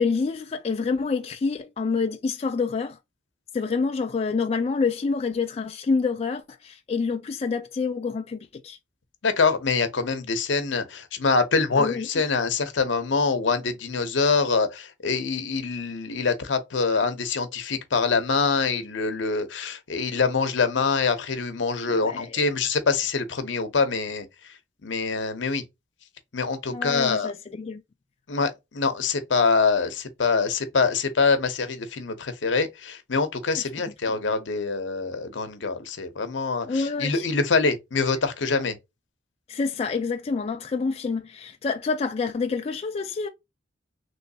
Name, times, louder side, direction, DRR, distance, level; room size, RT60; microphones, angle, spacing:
voice 1, 0.0-3.0 3.5-8.8 11.8-12.1 21.9-22.5 26.7-27.8 33.6-33.7 34.1-34.2 36.7-37.2 39.5-43.3, left 4 dB, 35° left, 0.3 m, -27 dB
voice 2, 9.2-24.3 24.8-25.6 26.3-27.3 28.3-38.7, left 4 dB, 80° left, 0.7 m, -25 dB
3.1 x 3.1 x 2.7 m
head